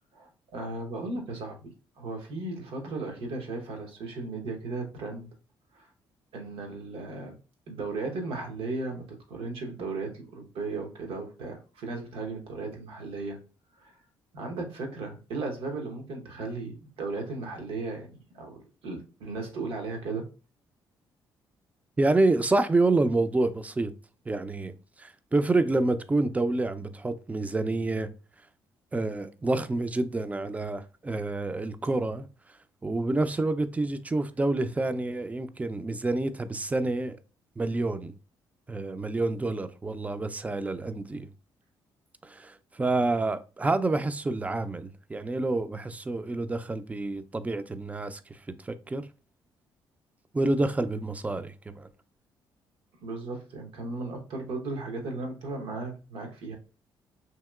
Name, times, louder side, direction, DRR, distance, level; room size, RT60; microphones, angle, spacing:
voice 1, 0.1-5.3 5.7-5.9 6.3-7.4 7.7-13.4 13.8-13.9 14.3-18.1 18.3-20.3 53.0-56.6, right 3 dB, 80° right, 0.8 m, -36 dB
voice 2, 22.0-23.9 24.3-24.7 25.0-28.1 28.9-32.3 32.8-37.2 37.6-38.1 38.7-41.3 42.2-48.2 48.6-49.1 50.3-51.9, right 2 dB, 15° right, 0.3 m, -28 dB
2.9 x 2.8 x 2.3 m
cardioid pair, 75°, 9 cm